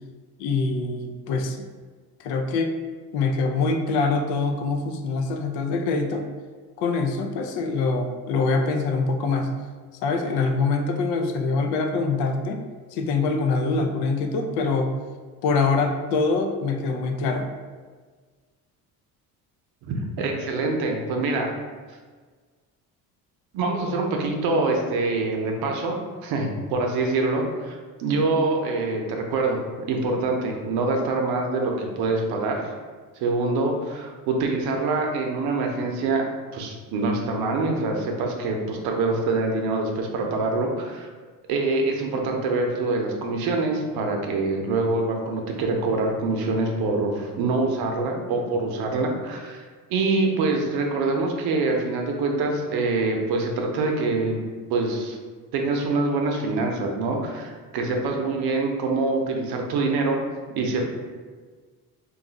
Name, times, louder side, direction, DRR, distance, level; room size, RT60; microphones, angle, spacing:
voice 1, 0.4-1.6 2.2-2.7 3.1-6.3 6.8-9.5 10.0-12.6 12.9-14.9 15.4-17.5, left 4 dB, 85° left, 5 dB, 0.5 m, -24 dB
voice 2, 19.8-21.5 23.5-25.9 26.2-29.6 29.9-32.7 33.2-36.2 36.5-41.1 41.5-54.4 54.7-55.2 55.5-60.2 60.6-60.8, right 3 dB, 80° right, 1 dB, 0.7 m, -25 dB
2.6 x 2.4 x 3.9 m, 1.5 s
cardioid pair, 145°, 37 cm